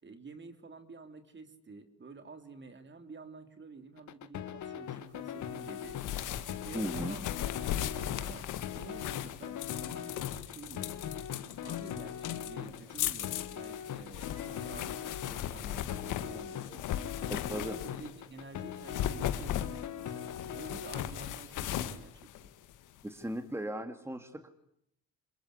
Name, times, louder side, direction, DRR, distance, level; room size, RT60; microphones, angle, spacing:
voice 1, 0.0-6.0 6.4-7.3 7.7-8.5 8.7-11.2 11.6-17.1 17.5-22.5, right 4 dB, 40° right, 9 dB, 3.5 m, -50 dB
sound 1, 4.0-21.1, left 9 dB, 70° left, 2.4 m, -41 dB
sound 2, 5.6-18.2 18.7-23.0, left 11 dB, 90° left, 1.9 m, -38 dB
voice 2, 6.7-7.2 17.3-17.8 23.0-24.5, right 1 dB, 10° right, 8 dB, 2.6 m, -37 dB
sound 3, 10.7-21.7, left 3 dB, 20° left, 7.1 m, -61 dB
27.0 x 22.5 x 9.7 m, 0.73 s
cardioid pair, 90°, 30 cm